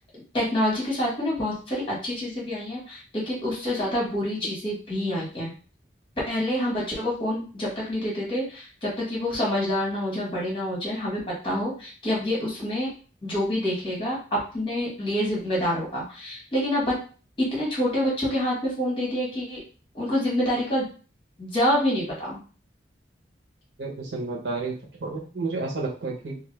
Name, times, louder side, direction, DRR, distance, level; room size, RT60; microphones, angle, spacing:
voice 1, 0.3-5.5 6.3-12.9 13.2-17.0 17.4-19.6 19.9-20.9 21.4-22.4, left 1 dB, 30° left, -5 dB, 1.4 m, -27 dB
voice 2, 23.8-26.4, right 3 dB, 85° right, -2 dB, 1.0 m, -31 dB
2.7 x 2.6 x 3.3 m, 0.38 s
head